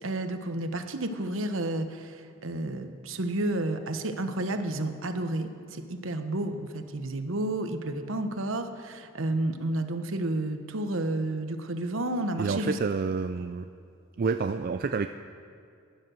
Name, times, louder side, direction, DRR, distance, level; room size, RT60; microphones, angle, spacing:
voice 1, 0.0-12.8, right 1 dB, 65° right, 7 dB, 1.1 m, -31 dB
voice 2, 12.4-13.7 14.2-15.1, right 4 dB, 45° right, 8 dB, 0.4 m, -28 dB
15.5 x 10.5 x 6.4 m, 2.5 s
head